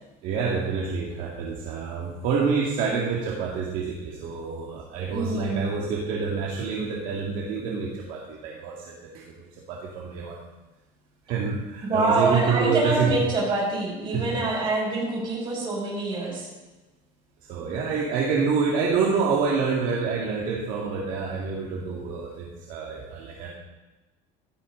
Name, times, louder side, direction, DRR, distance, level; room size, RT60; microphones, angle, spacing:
voice 1, 0.2-10.4 11.3-13.1 14.1-14.3 17.5-23.5, right 5 dB, 55° right, -3 dB, 2.1 m, -27 dB
voice 2, 5.1-5.7 11.8-16.5, right 2 dB, 30° right, -3 dB, 5.8 m, -25 dB
15.5 x 13.0 x 3.8 m, 1.1 s
cardioid pair, 170°, 17 cm